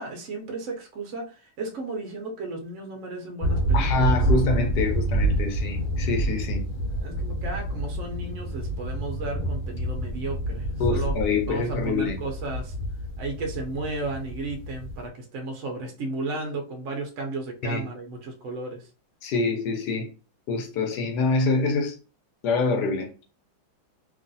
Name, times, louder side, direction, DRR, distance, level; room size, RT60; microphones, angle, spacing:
voice 1, 0.0-4.1 7.0-11.2 11.4-12.7 13.2-18.8, right 3 dB, 70° right, 0.7 m, -34 dB
sound 1, 3.4-15.1, right 1 dB, 90° left, 1.4 m, -28 dB
voice 2, 3.7-6.7 10.8-12.2 17.6-17.8 19.2-20.1 20.5-22.0 22.4-23.2, left 3 dB, 70° left, 1.0 m, -25 dB
3.0 x 2.5 x 2.6 m
omnidirectional pair, 2.1 m